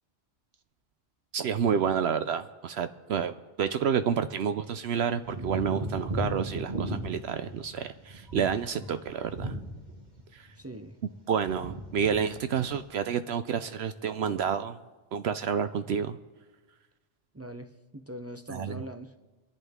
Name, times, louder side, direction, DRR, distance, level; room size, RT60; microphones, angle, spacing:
voice 1, 1.3-9.6 10.3-10.5 11.3-14.8 15.1-16.2 18.5-18.8, right 7 dB, 65° right, 10 dB, 0.8 m, -29 dB
sound 1, 5.2-10.2 10.5-11.1 11.4-12.2 12.5-12.8, right 1 dB, 40° right, 1.9 m, -36 dB
voice 2, 10.6-11.0 17.3-19.1, right 1 dB, 20° right, 6 dB, 0.4 m, -42 dB
25.0 x 11.0 x 3.6 m, 1.3 s
omnidirectional pair, 1.2 m